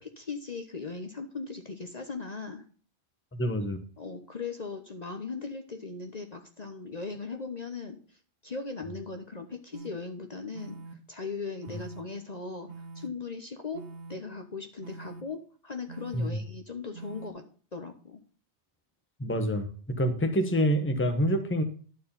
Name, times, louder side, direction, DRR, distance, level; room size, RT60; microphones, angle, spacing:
voice 1, 0.0-2.6 4.0-8.2 8.4-17.4 17.7-18.2, left 4 dB, 40° left, 5 dB, 1.0 m, -39 dB
voice 2, 3.3-3.8 16.1-16.4 19.2-21.6, equal, 10° left, 7 dB, 1.0 m, -27 dB
sound 1, 9.7-9.9 10.5-10.9 11.6-12.0 12.7-13.1 13.7-14.1 14.8-15.2 15.9-16.3 16.9-17.3, right 4 dB, 70° right, 1.3 m, -44 dB
11.5 x 4.7 x 5.5 m, 0.42 s
omnidirectional pair, 1.2 m